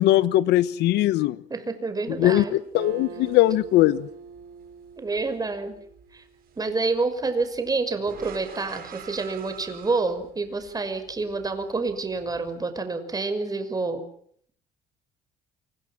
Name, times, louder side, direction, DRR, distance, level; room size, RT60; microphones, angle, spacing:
voice 1, 0.0-1.4 2.2-4.1, left 15 dB, 85° left, 17 dB, 1.1 m, -20 dB
voice 2, 1.5-2.6 5.0-5.8 6.1-6.2 6.6-14.0, right 3 dB, 20° right, 9 dB, 5.9 m, -28 dB
sound 1, 2.0-12.6, right 8 dB, 60° right, 7.5 m, -48 dB
Acoustic guitar, 2.7-6.3, right 6 dB, 80° right, 7.5 m, -43 dB
28.5 x 27.0 x 6.0 m, 0.63 s
cardioid pair, 110°, 17 cm